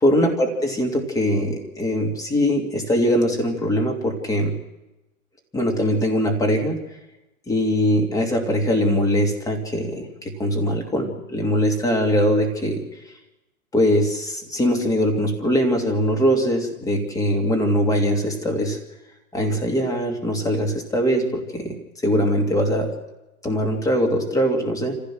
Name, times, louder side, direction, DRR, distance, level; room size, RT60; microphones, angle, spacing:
voice 1, 0.0-0.5 0.8-4.6 5.5-6.8 7.5-12.8 13.7-18.8 19.3-21.8 22.0-22.9 23.4-25.0, equal, 10° left, 2 dB, 2.6 m, -21 dB
27.0 x 15.5 x 6.2 m, 0.98 s
hypercardioid pair, 140°, 43 cm